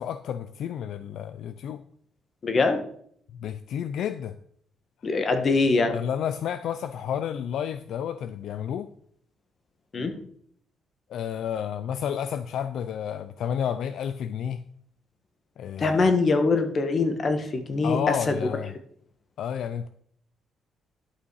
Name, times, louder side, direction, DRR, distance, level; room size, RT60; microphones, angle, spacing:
voice 1, 0.0-1.8 3.4-4.4 5.9-8.9 11.1-14.6 15.6-16.1 17.8-18.7 19.4-19.9, left 9 dB, 75° left, 12 dB, 0.4 m, -31 dB
voice 2, 2.4-2.8 5.0-5.9 9.9-10.1 15.8-18.4, left 3 dB, 45° left, 7 dB, 1.4 m, -23 dB
11.0 x 5.7 x 4.7 m, 0.65 s
cardioid pair, 90°, 0 cm